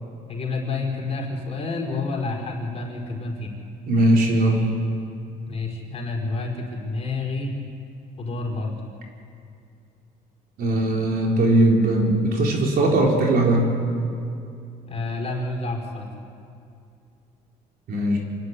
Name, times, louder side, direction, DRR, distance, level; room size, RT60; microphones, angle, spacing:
voice 1, 0.3-3.5 5.5-7.6 8.2-8.8 14.9-16.1, left 3 dB, 35° left, -2 dB, 4.7 m, -29 dB
voice 2, 3.9-4.7 10.6-13.7 17.9-18.2, right 1 dB, 65° right, 0 dB, 4.2 m, -19 dB
26.0 x 11.5 x 9.7 m, 2.5 s
cardioid pair, 110°, 17 cm